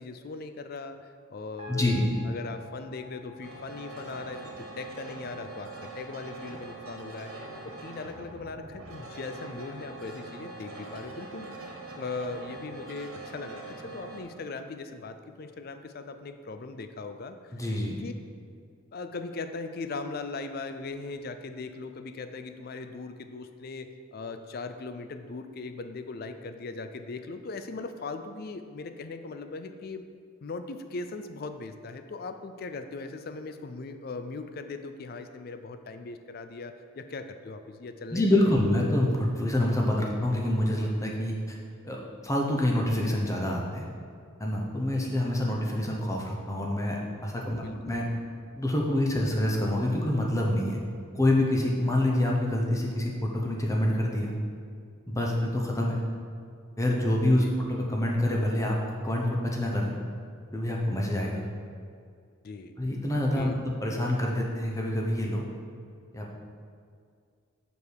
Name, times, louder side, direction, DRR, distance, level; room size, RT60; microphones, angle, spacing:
voice 1, 0.0-4.4 4.8-7.3 7.6-11.5 12.0-17.6 18.0-18.1 18.9-30.0 30.4-38.4 47.5-48.0 57.4-57.5 62.4-62.7 63.3-63.6, left 3 dB, 45° left, 8 dB, 0.4 m, -39 dB
sound 1, 1.6-13.9, left 2 dB, 30° right, 1.1 m, -52 dB
voice 2, 1.7-2.0 17.5-18.0 38.1-41.6 41.8-43.9 44.4-48.0 48.5-50.8 51.1-54.3 55.1-56.0 56.8-57.4 57.7-58.8 59.0-59.9 60.5-61.4 62.8-65.4 66.1-66.3, left 1 dB, 15° left, -1 dB, 0.7 m, -26 dB
sound 2, 3.4-14.2, right 3 dB, 85° right, 1.0 m, -43 dB
6.5 x 5.3 x 4.7 m, 2.2 s
head